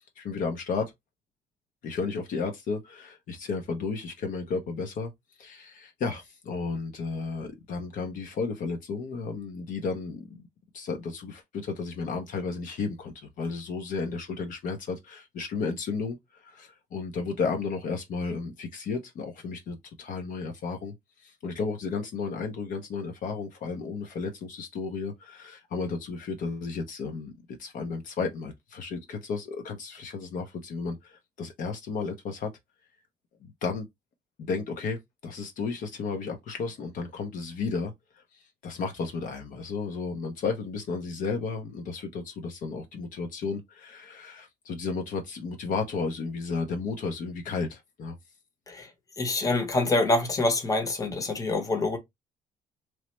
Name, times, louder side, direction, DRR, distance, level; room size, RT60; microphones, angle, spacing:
voice 1, 0.2-0.9 1.8-5.1 5.4-10.4 10.7-20.9 21.2-32.5 33.4-33.9 34.4-48.1, left 4 dB, 60° left, 0.6 m, -33 dB
voice 2, 49.2-52.0, left 2 dB, 20° left, 0.8 m, -26 dB
3.0 x 2.0 x 3.0 m
cardioid pair, 130°, 16 cm